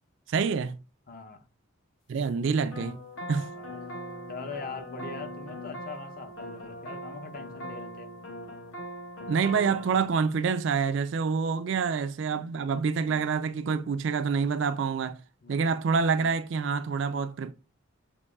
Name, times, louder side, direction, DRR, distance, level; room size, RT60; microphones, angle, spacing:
voice 1, 0.3-0.8 2.1-3.0 3.3-3.5 9.3-15.2 15.5-17.5, right 5 dB, 60° right, 0.3 m, -27 dB
voice 2, 1.1-1.4 3.3-3.8 4.3-8.1 12.3-12.5 15.4-15.6, left 4 dB, 45° left, 0.6 m, -42 dB
sound 1, 2.7-10.1, equal, 70° left, 1.0 m, -40 dB
6.7 x 3.0 x 2.3 m
head